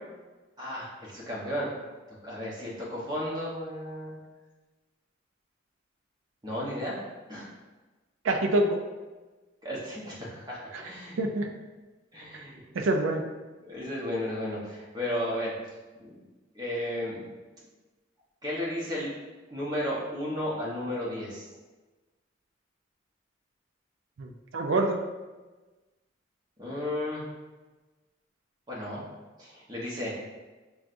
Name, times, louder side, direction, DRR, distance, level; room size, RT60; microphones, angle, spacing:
voice 1, 0.6-1.7 2.1-4.2 6.4-7.0 7.3-7.5 9.6-11.2 12.1-12.6 13.6-15.5 16.0-16.2 16.5-17.7 18.4-19.1 19.5-21.5 26.6-27.3 28.7-29.0 29.4-30.1, left 1 dB, 20° right, -6 dB, 1.0 m, -34 dB
voice 2, 8.2-8.8 10.7-10.8 11.2-11.5 12.7-13.2 24.2-25.0, right 2 dB, 80° right, 3 dB, 0.4 m, -26 dB
6.0 x 2.3 x 2.5 m, 1.2 s
head